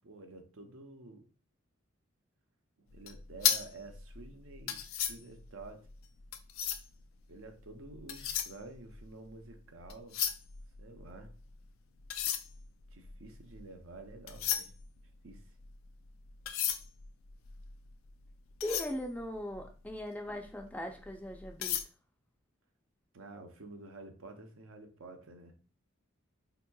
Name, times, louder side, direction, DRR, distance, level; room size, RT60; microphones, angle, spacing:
voice 1, 0.0-1.3 2.8-5.9 7.3-10.2 10.8-11.3 12.9-14.7 15.2-15.4 23.1-25.6, right 3 dB, 80° right, 0.6 m, -50 dB
sound 1, 3.0-7.0 7.8-9.5 9.8-11.5 12.0-20.0 20.4-20.6 21.0-21.8, left 10 dB, 75° left, 0.4 m, -36 dB
voice 2, 18.6-21.8, left 1 dB, 5° left, 0.4 m, -39 dB
4.3 x 2.9 x 2.2 m
head